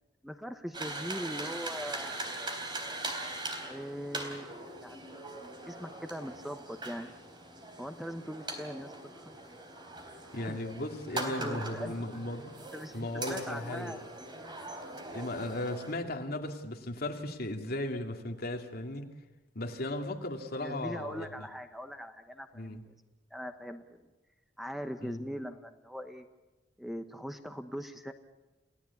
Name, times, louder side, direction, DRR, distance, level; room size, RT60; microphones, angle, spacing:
voice 1, 0.2-2.3 3.7-5.4 5.6-7.1 7.8-9.4 10.5-10.6 11.2-11.9 12.7-14.0 20.6-22.8 23.3-24.0 24.6-26.3 26.8-28.1, equal, ahead, 7 dB, 1.0 m, -41 dB
sound 1, 0.7-15.9, right 2 dB, 25° right, 3.8 m, -41 dB
voice 2, 10.3-12.5 12.9-14.0 15.1-19.1 19.5-21.5 22.5-22.8 25.0-25.2, left 1 dB, 55° left, 3 dB, 2.5 m, -36 dB
30.0 x 17.0 x 8.5 m, 1.1 s
head